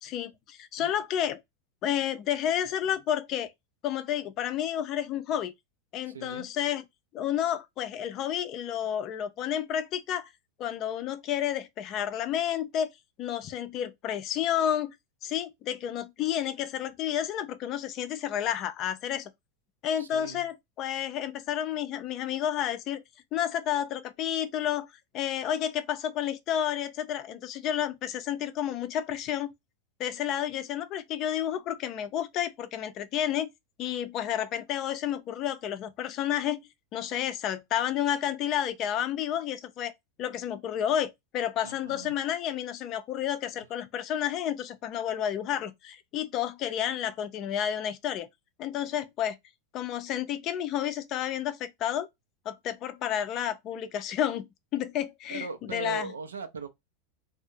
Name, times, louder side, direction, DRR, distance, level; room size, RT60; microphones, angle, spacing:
voice 1, 0.0-1.4 1.8-3.5 3.8-5.5 5.9-6.8 7.1-10.3 10.6-12.9 13.2-14.9 15.2-19.3 19.8-23.0 23.3-24.9 25.1-29.5 30.0-33.5 33.8-36.6 36.9-39.9 40.2-48.3 48.6-49.4 49.7-52.1 52.5-54.5 54.7-56.1, left 10 dB, 45° left, 0.4 m, -30 dB
voice 2, 6.1-6.5 20.0-20.5 41.6-42.2 55.3-56.7, right 4 dB, 80° right, 0.4 m, -39 dB
2.3 x 2.0 x 2.6 m
figure-of-eight pair, 90°, 0 cm